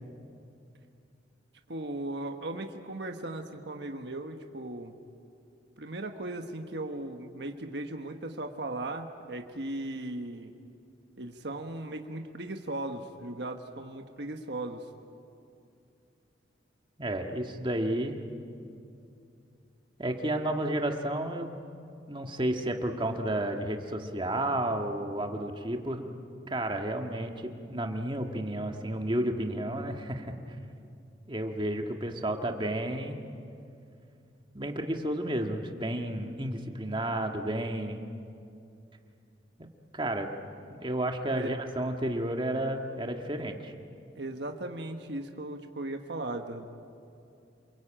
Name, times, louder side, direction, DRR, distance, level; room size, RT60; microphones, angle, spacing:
voice 1, 1.7-4.9 5.8-10.5 11.2-14.9 41.3-41.5 44.1-46.7, right 2 dB, 65° right, 4 dB, 1.4 m, -37 dB
voice 2, 17.0-18.2 20.0-21.5 22.1-26.0 26.5-30.3 31.3-33.2 34.5-38.1 39.9-40.3 40.7-43.7, right 1 dB, 25° right, 4 dB, 1.8 m, -31 dB
28.5 x 22.5 x 9.0 m, 2.5 s
head